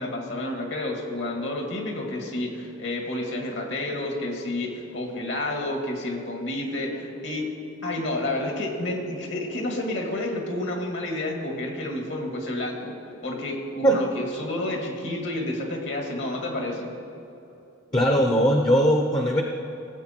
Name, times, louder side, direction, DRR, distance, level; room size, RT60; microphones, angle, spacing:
voice 1, 0.0-7.6 7.8-13.0 13.2-16.9, left 1 dB, 60° left, 2 dB, 1.9 m, -30 dB
voice 2, 17.9-19.4, equal, 20° left, 2 dB, 0.7 m, -20 dB
17.5 x 7.9 x 4.4 m, 2.8 s
head